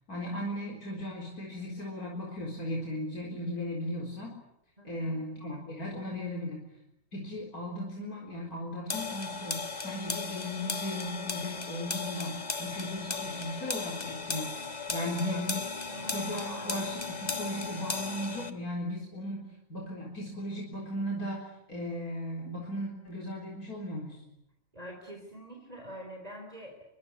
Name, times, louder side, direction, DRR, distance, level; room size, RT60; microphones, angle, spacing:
voice 1, 0.1-4.3 4.8-6.6 7.1-14.6 14.9-15.6 16.1-24.2, left 1 dB, 90° left, 0 dB, 4.6 m, -36 dB
voice 2, 4.8-5.2 15.2-16.8 24.7-26.8, equal, 25° right, 1 dB, 4.2 m, -45 dB
sound 1, 8.9-18.5, left 4 dB, 30° left, 1.7 m, -36 dB
25.0 x 23.0 x 9.7 m, 0.82 s
omnidirectional pair, 1.5 m